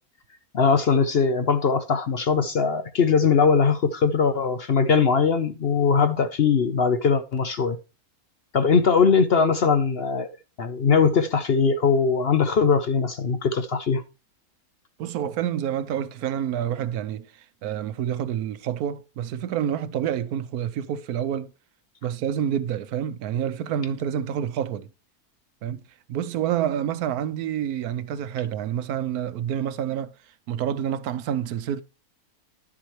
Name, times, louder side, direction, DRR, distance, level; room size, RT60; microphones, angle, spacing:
voice 1, 0.5-7.8 8.5-10.3 10.6-14.0, left 5 dB, 55° left, 0.8 m, -21 dB
voice 2, 15.0-21.5 22.0-24.9 25.6-25.8 26.1-30.1 30.5-31.8, right 9 dB, 80° right, 1.2 m, -28 dB
11.0 x 7.2 x 3.1 m
omnidirectional pair, 1.6 m